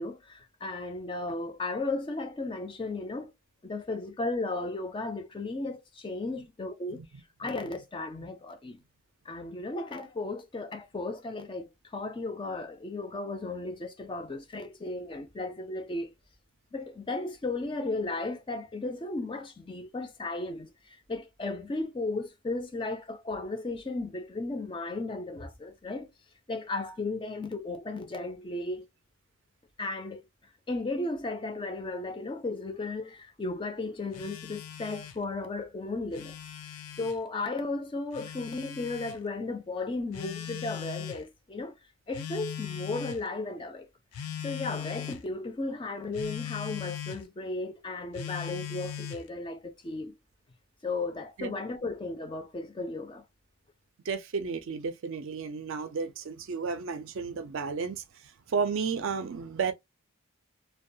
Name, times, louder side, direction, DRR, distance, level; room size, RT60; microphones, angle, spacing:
voice 1, 0.0-3.3 3.6-7.0 7.4-8.8 9.3-16.1 16.7-20.7 21.1-26.1 26.5-28.9 29.8-30.2 30.7-36.3 37.0-41.7 42.1-43.9 44.4-50.1 50.8-53.2, left 2 dB, 20° left, 0.3 m, -35 dB
Telephone, 34.1-35.2 36.0-37.2 38.1-39.2 40.1-41.2 42.1-43.3 44.1-45.2 46.1-47.2 48.1-49.3, left 9 dB, 85° left, 0.4 m, -39 dB
voice 2, 54.1-58.0 58.5-59.7, right 5 dB, 60° right, 0.4 m, -32 dB
2.3 x 2.2 x 2.6 m
head